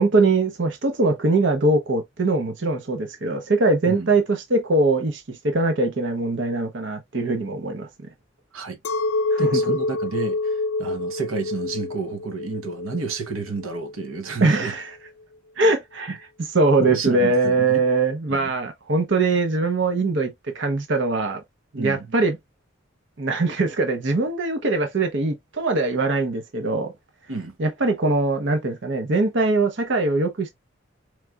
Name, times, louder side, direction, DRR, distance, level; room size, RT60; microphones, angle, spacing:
voice 1, 0.0-7.9 9.3-9.8 14.4-15.0 15.6-16.2 16.5-21.4 21.8-22.4 23.2-26.9 27.6-30.5, right 3 dB, 60° right, 0.7 m, -22 dB
Chink clink, 8.8-14.3, left 2 dB, 85° left, 0.5 m, -27 dB
voice 2, 9.4-14.7 16.1-16.2 16.8-17.8 18.3-18.5 21.7-22.1 27.3-27.5, right 4 dB, 90° right, 0.9 m, -31 dB
4.5 x 3.2 x 2.3 m
head